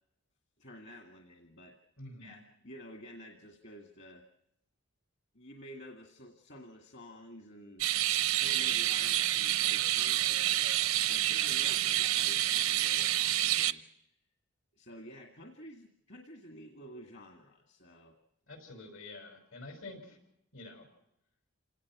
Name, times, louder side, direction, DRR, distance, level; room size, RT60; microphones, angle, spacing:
voice 1, 0.6-1.8 2.2-4.2 5.3-7.9 8.4-10.7 11.1-14.1 14.7-18.2, equal, 55° left, 3 dB, 2.0 m, -51 dB
voice 2, 2.0-2.4 11.5-11.6 18.5-20.2 20.5-20.9, left 2 dB, 75° left, 6 dB, 5.6 m, -48 dB
sound 1, 7.8-13.7, right 13 dB, 80° right, 0.7 m, -28 dB
28.0 x 18.0 x 6.0 m, 0.79 s
head